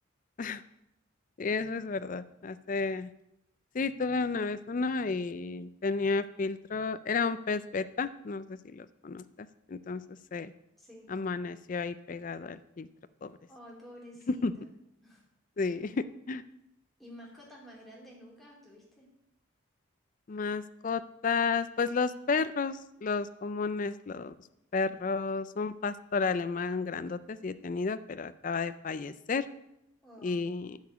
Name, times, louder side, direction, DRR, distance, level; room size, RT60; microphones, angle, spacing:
voice 1, 1.4-3.1 3.7-9.2 9.7-10.5 11.1-12.9 13.2-13.3 14.4-14.5 15.6-16.4 20.3-24.3 24.7-29.5 30.2-30.8, left 4 dB, 40° left, 13 dB, 0.4 m, -32 dB
voice 2, 10.8-11.1 13.5-14.6 15.0-15.2 17.0-19.1 30.0-30.4, equal, ahead, -4 dB, 2.8 m, -51 dB
10.5 x 4.9 x 8.1 m, 0.83 s
head